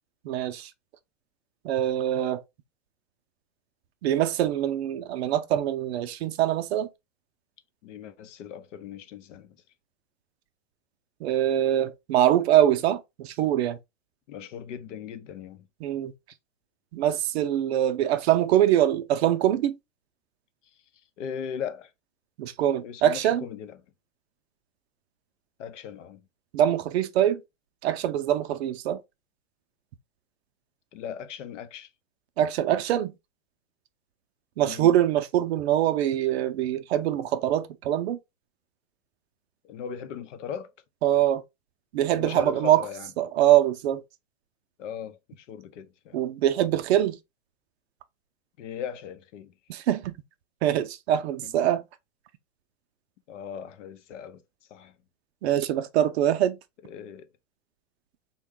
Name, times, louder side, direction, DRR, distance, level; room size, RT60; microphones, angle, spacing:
voice 1, 0.2-0.7 1.6-2.4 4.0-6.9 11.2-13.8 15.8-16.1 16.9-19.8 22.4-23.4 26.5-27.4 27.8-29.0 32.4-33.1 34.6-38.2 41.0-41.4 41.9-42.8 43.2-44.0 46.1-47.2 49.7-50.2 50.6-51.8 55.4-56.6, right 11 dB, 55° right, 0.5 m, -23 dB
voice 2, 7.8-9.6 14.3-15.7 21.2-21.9 22.8-23.8 25.6-26.3 30.9-31.9 34.6-34.9 39.6-40.7 42.2-43.1 44.8-46.2 48.6-49.5 51.4-51.5 53.3-54.4 54.7-55.0 56.8-57.3, left 8 dB, 65° left, 0.7 m, -38 dB
3.5 x 2.2 x 3.6 m
supercardioid pair, 160°, 39 cm